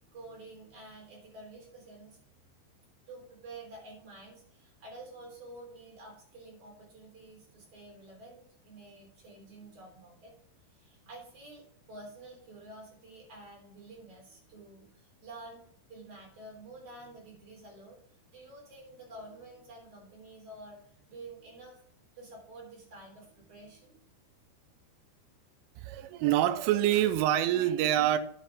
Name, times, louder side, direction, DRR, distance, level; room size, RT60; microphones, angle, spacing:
voice 1, 0.1-2.2 3.1-10.3 10.7-18.0 18.3-21.8 22.1-23.9, right 2 dB, 35° right, -2 dB, 3.8 m, -49 dB
voice 2, 25.8-28.2, right 12 dB, 90° right, 11 dB, 3.2 m, -26 dB
10.5 x 8.1 x 3.5 m, 0.62 s
omnidirectional pair, 5.5 m